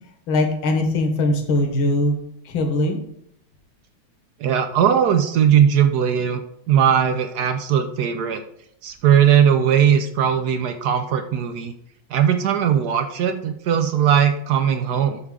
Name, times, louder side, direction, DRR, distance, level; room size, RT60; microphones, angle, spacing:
voice 1, 0.3-2.2 2.5-3.0, left 1 dB, 70° left, 3 dB, 2.0 m, -21 dB
voice 2, 4.4-6.4 6.7-8.4 8.8-11.7 12.1-15.2, right 8 dB, 75° right, 8 dB, 0.9 m, -19 dB
11.0 x 6.7 x 3.7 m, 0.73 s
omnidirectional pair, 2.4 m